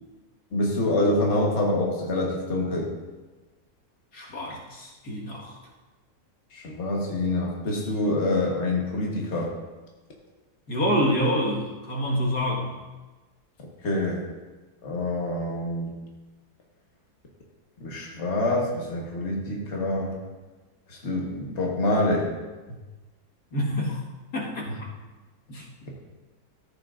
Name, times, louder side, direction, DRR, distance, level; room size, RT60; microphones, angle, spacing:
voice 1, 0.5-2.9 6.5-9.5 13.8-14.2 14.8-15.9 17.8-20.2 20.9-22.3 24.7-24.8, left 1 dB, 45° left, -1 dB, 1.6 m, -26 dB
voice 2, 4.1-5.5 10.7-12.7 23.5-24.0 24.3-24.7 25.5-25.6, equal, 75° left, -3 dB, 2.2 m, -27 dB
14.0 x 8.7 x 2.5 m, 1.2 s
omnidirectional pair, 1.7 m